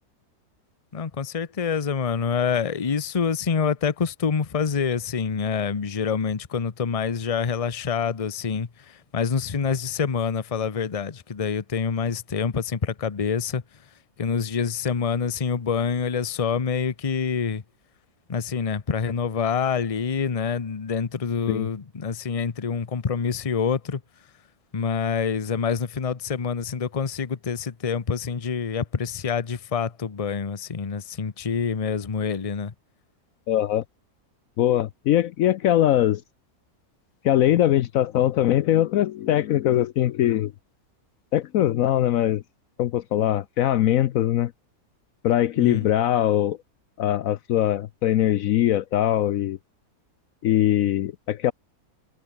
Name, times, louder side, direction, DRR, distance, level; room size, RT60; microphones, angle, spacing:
voice 1, 0.9-13.6 14.2-17.6 18.3-24.0 24.7-32.7 45.6-45.9, left 6 dB, 30° left, 0.8 m, -26 dB
voice 2, 33.5-33.8 34.6-36.2 37.2-40.5 41.3-42.4 42.8-44.5 45.2-46.6 47.0-49.6 50.4-51.5, left 12 dB, 70° left, 1.0 m, -21 dB
omnidirectional pair, 1.6 m